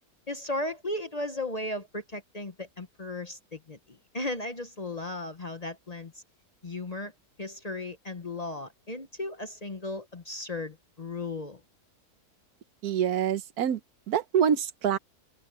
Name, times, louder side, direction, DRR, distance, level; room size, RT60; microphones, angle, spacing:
voice 1, 0.3-6.2 6.6-7.1 7.4-11.6, left 2 dB, 30° left, 0.9 m, -36 dB
voice 2, 12.8-13.8 14.1-15.0, right 8 dB, 80° right, 1.3 m, -26 dB
open air
omnidirectional pair, 1.6 m